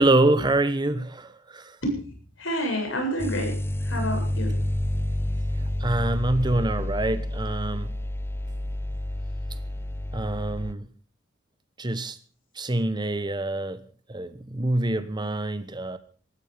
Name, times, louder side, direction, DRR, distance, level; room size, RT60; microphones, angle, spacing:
voice 1, 0.0-1.8 5.8-7.9 10.1-10.8 11.8-12.2 12.6-13.8 14.1-16.0, right 2 dB, 25° right, 1.1 m, -25 dB
voice 2, 2.4-4.6 6.8-6.9, equal, 90° left, 7.7 m, -29 dB
sound 1, 3.2-10.7, left 1 dB, 10° left, 0.7 m, -29 dB
18.5 x 14.5 x 5.2 m
head